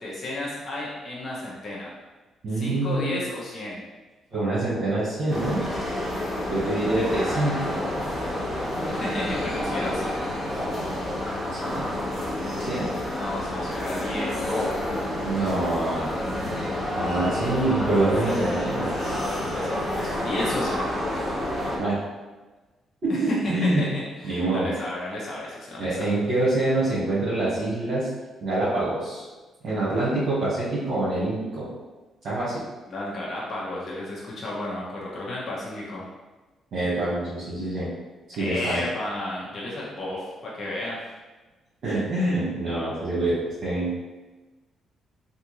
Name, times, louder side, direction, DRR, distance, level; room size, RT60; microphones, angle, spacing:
voice 1, 0.0-1.9 2.5-3.8 8.9-10.3 13.1-14.7 18.9-20.8 23.1-26.2 29.9-30.0 32.9-36.0 38.4-41.0, left 1 dB, 45° left, -6 dB, 0.9 m, -33 dB
voice 2, 2.4-3.2 4.3-5.6 6.5-7.8 11.5-11.9 12.6-12.9 15.2-16.1 17.0-18.9 21.8-22.0 23.0-23.9 24.2-24.7 25.8-28.1 28.4-29.2 29.6-31.7 32.2-32.6 36.7-37.9 38.4-38.8 41.8-43.4 43.6-44.0, right 2 dB, 60° right, -10 dB, 1.3 m, -25 dB
sound 1, 5.3-21.8, left 1 dB, 15° left, 1.3 m, -29 dB
3.5 x 2.6 x 3.0 m, 1.2 s
cardioid pair, 90°, 0 cm